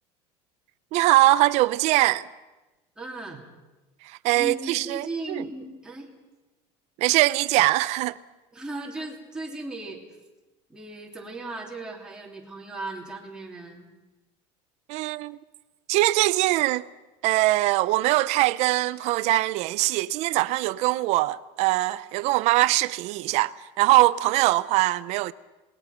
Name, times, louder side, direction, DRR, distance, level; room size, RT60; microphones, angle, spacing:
voice 1, 0.9-2.3 4.2-5.4 7.0-8.2 14.9-15.4 15.9-16.8 17.2-25.3, right 18 dB, 50° right, 0.7 m, -22 dB
voice 2, 3.0-3.4 4.3-6.1 8.5-10.0 10.7-13.9, right 2 dB, 5° right, 3.0 m, -36 dB
27.5 x 20.5 x 5.9 m
cardioid pair, 170°, 14 cm